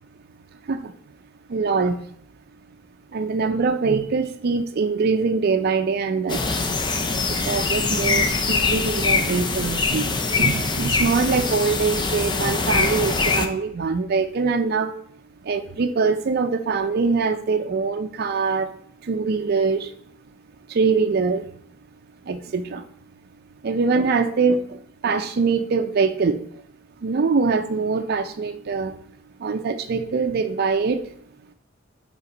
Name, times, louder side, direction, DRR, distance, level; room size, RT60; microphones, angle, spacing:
voice 1, 1.5-2.0 3.1-6.4 7.5-10.1 10.4-14.9 15.5-18.7 19.1-19.9 20.7-21.4 22.3-22.8 23.6-24.6 25.0-26.4 27.0-28.9 29.4-31.0, right 4 dB, 55° right, 7 dB, 0.4 m, -23 dB
sound 1, 6.3-13.5, left 4 dB, 25° left, 0.5 m, -23 dB
5.7 x 4.4 x 3.9 m, 0.65 s
head